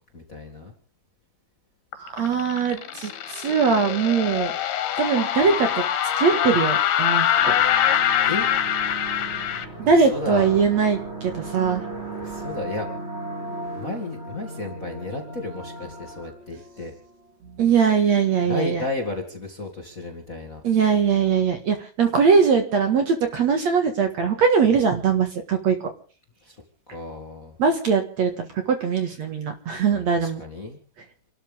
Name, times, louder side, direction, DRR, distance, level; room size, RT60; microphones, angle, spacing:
voice 1, 0.1-0.7 8.2-8.5 9.8-10.7 12.2-12.9 13.7-16.9 18.4-20.6 26.4-26.6 26.9-27.5 29.9-30.8, left 2 dB, 25° left, 4 dB, 2.1 m, -33 dB
sound 1, 1.9-9.7, left 10 dB, 80° left, 3.4 m, -23 dB
voice 2, 2.0-4.5 5.0-5.8 6.2-7.6 9.8-11.8 17.6-18.8 20.6-25.8 27.6-30.4, right 6 dB, 55° right, 6 dB, 2.5 m, -21 dB
sound 2, 7.4-17.1, right 2 dB, 15° right, 6.8 m, -36 dB
29.5 x 12.5 x 3.5 m, 0.39 s
omnidirectional pair, 4.4 m